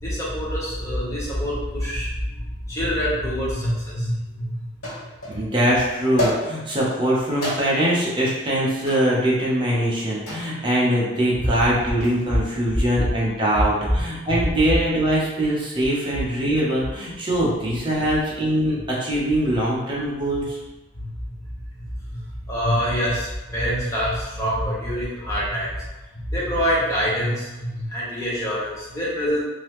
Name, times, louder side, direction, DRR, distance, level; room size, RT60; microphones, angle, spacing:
voice 1, 0.0-4.7 14.3-14.4 20.9-21.3 21.9-25.7 26.1-29.4, equal, 15° left, -8 dB, 1.2 m, -26 dB
sound 1, 3.6-3.7 4.8-5.4 6.2-6.8 7.4-8.0 8.9-9.1 10.3-10.6 11.8-12.2, left 1 dB, 90° left, 1.4 m, -28 dB
voice 2, 5.3-20.6, right 1 dB, 25° right, -6 dB, 1.0 m, -22 dB
3.8 x 2.9 x 3.1 m, 1.1 s
head